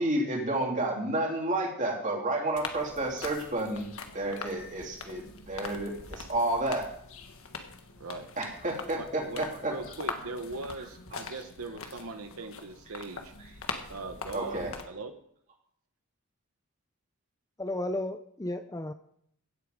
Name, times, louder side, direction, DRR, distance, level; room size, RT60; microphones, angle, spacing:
voice 1, 0.0-3.9 4.1-6.8 8.4-9.9 10.8-10.9 11.2-11.3 11.8-11.9 12.9-13.0 14.3-14.7, right 1 dB, 35° right, 0 dB, 2.9 m, -31 dB
sound 1, 2.5-14.8, left 4 dB, 70° left, 1.5 m, -43 dB
voice 2, 8.9-13.3 13.9-14.6 14.9-15.1, right 3 dB, 75° right, 7 dB, 1.1 m, -40 dB
voice 3, 17.6-18.9, left 1 dB, 15° left, 9 dB, 0.5 m, -33 dB
16.5 x 8.1 x 5.2 m, 0.68 s
head